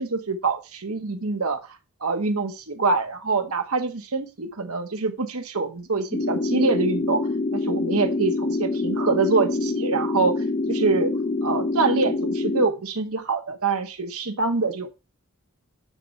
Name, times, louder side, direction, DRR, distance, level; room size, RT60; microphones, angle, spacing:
voice 1, 0.0-1.6 2.0-7.2 7.5-10.3 10.7-11.1 11.4-14.9, right 4 dB, 85° right, 6 dB, 1.4 m, -25 dB
sound 1, 6.1-12.7, left 3 dB, 35° left, 0.5 m, -26 dB
9.9 x 3.4 x 6.6 m, 0.27 s
head